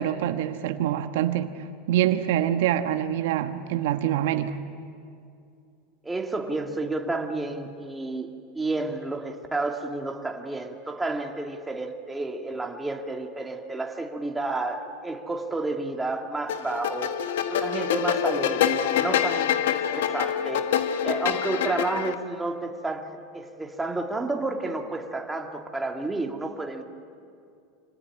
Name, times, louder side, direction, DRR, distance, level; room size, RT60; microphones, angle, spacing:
voice 1, 0.0-1.6 1.9-4.6, right 11 dB, 75° right, 8 dB, 1.2 m, -25 dB
voice 2, 6.0-8.3 8.5-17.2 17.5-26.8, right 2 dB, 10° right, 3 dB, 2.2 m, -31 dB
sound 1, 16.5-22.1, left 9 dB, 85° left, 1.3 m, -26 dB
25.5 x 18.5 x 9.9 m, 2.4 s
supercardioid pair, 120°, 0 cm